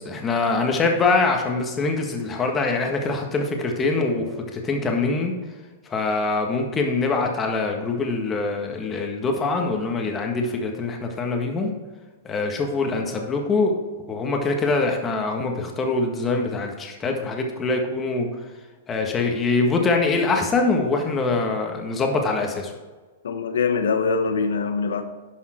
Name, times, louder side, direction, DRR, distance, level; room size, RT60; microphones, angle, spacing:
voice 1, 0.0-5.3 5.9-11.7 12.2-13.8 14.1-18.3 18.9-22.7, left 3 dB, 20° left, 2 dB, 1.6 m, -24 dB
voice 2, 23.2-25.0, left 5 dB, 80° left, 8 dB, 1.1 m, -23 dB
11.0 x 5.6 x 4.4 m, 1.3 s
hypercardioid pair, 125°, 0 cm